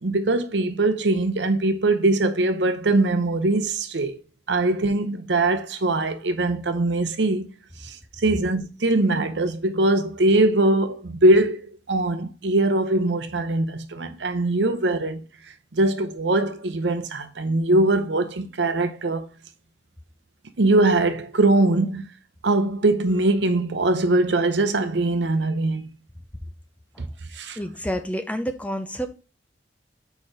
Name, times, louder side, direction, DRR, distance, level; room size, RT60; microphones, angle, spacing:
voice 1, 0.0-4.2 4.5-7.5 7.8-15.2 15.7-19.3 20.6-22.1 22.4-25.9 27.0-27.1 27.3-27.6, right 2 dB, 80° right, 0.8 m, -22 dB
voice 2, 27.6-29.1, equal, 10° left, 0.5 m, -29 dB
4.6 x 4.4 x 4.9 m
head